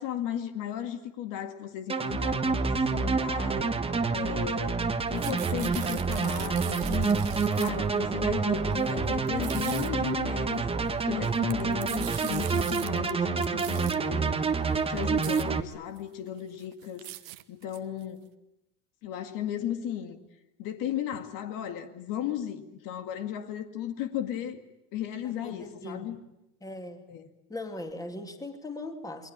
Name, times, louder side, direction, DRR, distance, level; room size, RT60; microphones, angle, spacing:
voice 1, 0.0-3.8 4.1-4.8 5.1-7.2 7.5-10.6 11.0-14.6 14.9-17.1 17.5-18.3 19.0-20.2 20.6-24.6 24.9-26.2 27.1-27.3, left 10 dB, 55° left, 7 dB, 2.1 m, -35 dB
sound 1, 1.9-15.6, right 4 dB, 15° right, 1.3 m, -28 dB
sound 2, 5.0-7.9 8.7-8.9 9.3-9.9 11.1-13.1 13.4-14.0 14.7-14.8 15.0-15.5 16.0-16.1 16.4-18.0, right 18 dB, 80° right, 1.4 m, -41 dB
voice 2, 25.2-26.1 26.6-27.0 27.5-29.3, left 2 dB, 10° left, 5 dB, 2.5 m, -39 dB
28.0 x 21.0 x 8.9 m, 0.90 s
supercardioid pair, 125°, 39 cm